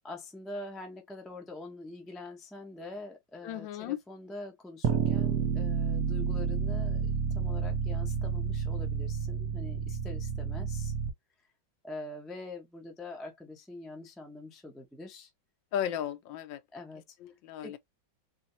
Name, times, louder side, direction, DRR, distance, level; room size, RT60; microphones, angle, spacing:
voice 1, 0.0-10.9 11.8-15.3 16.7-17.0 17.6-17.8, left 2 dB, ahead, 0.5 m, -44 dB
voice 2, 3.4-4.0 15.7-16.6 17.2-17.8, left 10 dB, 80° left, 1.4 m, -35 dB
sound 1, 4.8-11.1, right 6 dB, 60° right, 1.6 m, -30 dB
4.3 x 2.9 x 2.7 m
omnidirectional pair, 2.1 m